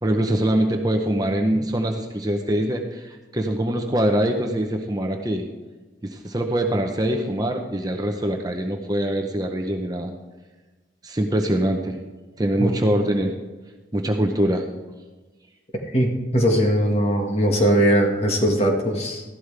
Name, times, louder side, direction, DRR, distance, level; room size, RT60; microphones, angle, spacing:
voice 1, 0.0-5.5 6.0-10.1 11.0-12.0 12.4-13.4 13.9-14.7, right 1 dB, 20° right, 3 dB, 0.8 m, -23 dB
voice 2, 15.9-19.2, right 1 dB, 35° left, 1 dB, 1.7 m, -20 dB
14.5 x 11.5 x 3.4 m, 1.2 s
head